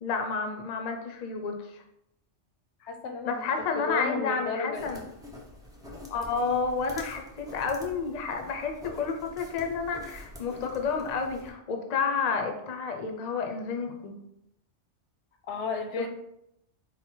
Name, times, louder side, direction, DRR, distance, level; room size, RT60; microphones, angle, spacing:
voice 1, 0.0-1.7 3.2-5.0 6.1-7.2 7.5-14.1, left 5 dB, 50° left, 4 dB, 0.5 m, -30 dB
voice 2, 2.8-5.0 15.5-16.1, left 4 dB, 80° left, 5 dB, 0.9 m, -33 dB
sound 1, 4.7-11.5, left 1 dB, 5° right, 0.5 m, -46 dB
4.2 x 2.1 x 4.3 m, 0.80 s
omnidirectional pair, 1.2 m